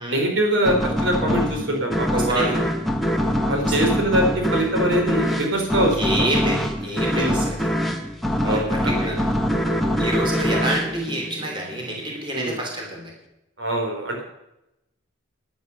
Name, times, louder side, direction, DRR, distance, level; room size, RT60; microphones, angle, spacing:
voice 1, 0.1-2.6 3.5-6.3 7.1-7.3 8.4-9.1 12.3-12.5 13.6-14.2, right 1 dB, 70° right, 2 dB, 3.2 m, -23 dB
sound 1, 0.6-11.9, equal, ahead, 1.2 m, -24 dB
voice 2, 2.1-2.6 3.6-4.0 5.9-7.7 8.5-9.4 10.0-13.1, right 1 dB, 25° right, -1 dB, 3.2 m, -28 dB
11.5 x 11.0 x 6.6 m, 0.88 s
head